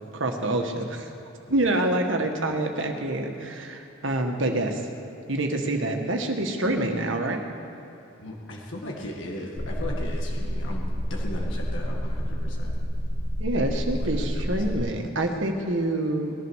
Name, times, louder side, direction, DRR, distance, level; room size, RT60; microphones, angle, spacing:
voice 1, 0.1-1.1 1.5-4.8 5.3-7.4 13.4-16.3, right 1 dB, 65° right, 3 dB, 1.7 m, -26 dB
voice 2, 8.2-12.8 13.9-14.8, left 1 dB, 60° left, -1 dB, 2.1 m, -37 dB
sound 1, 9.6-14.8, equal, 40° left, 1.5 m, -29 dB
20.0 x 11.0 x 6.4 m, 3.0 s
head